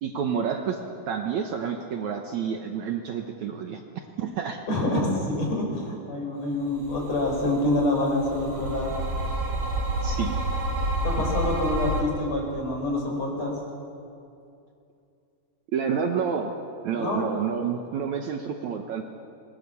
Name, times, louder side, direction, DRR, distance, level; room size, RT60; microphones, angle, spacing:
voice 1, 0.0-0.8 1.1-3.8 4.2-4.6 10.0-10.3 15.7-16.6 16.8-19.0, right 7 dB, 65° right, 3 dB, 2.1 m, -29 dB
voice 2, 4.7-8.9 11.0-13.5 16.9-17.2, left 1 dB, 45° left, 0 dB, 6.1 m, -26 dB
sound 1, 6.8-12.0, right 1 dB, 45° right, 4.7 m, -29 dB
26.0 x 22.0 x 7.0 m, 2.6 s
omnidirectional pair, 4.2 m